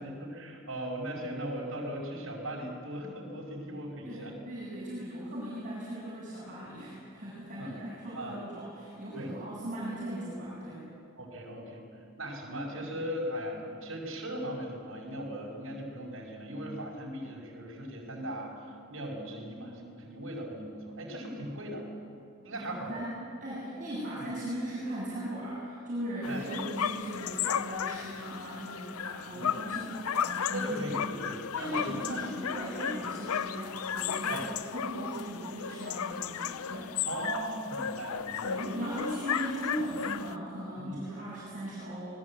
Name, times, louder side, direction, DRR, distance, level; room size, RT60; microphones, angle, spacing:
voice 1, 0.0-4.4 7.6-7.7 8.2-8.3 9.1-9.3 11.2-11.9 12.2-21.9 22.4-23.0 24.2-24.3 26.3-26.4 29.3-29.5 30.4-32.3 34.3-34.5 37.1-38.6 40.8-41.0, right 1 dB, 65° right, -2 dB, 5.3 m, -38 dB
voice 2, 4.1-10.8 22.6-30.7 31.5-36.9 38.4-42.2, right 1 dB, 35° right, -8 dB, 7.6 m, -38 dB
sound 1, 26.2-40.3, left 8 dB, 80° left, 0.6 m, -35 dB
25.5 x 20.0 x 8.6 m, 2.5 s
head